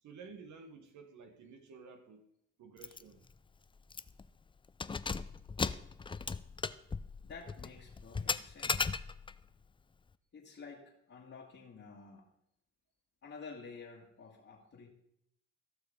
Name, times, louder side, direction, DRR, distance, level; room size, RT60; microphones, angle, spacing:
voice 1, 0.0-2.3 2.6-3.3, right 5 dB, 70° right, 1.4 m, -53 dB
Keys jangling, 2.8-3.0 3.3-3.4 3.9-4.3 4.7-9.4, left 4 dB, 15° left, 0.4 m, -37 dB
voice 2, 7.2-9.0 10.3-12.3 13.2-14.9, left 4 dB, 50° left, 2.1 m, -51 dB
14.5 x 6.2 x 5.2 m
cardioid pair, 90°, 30 cm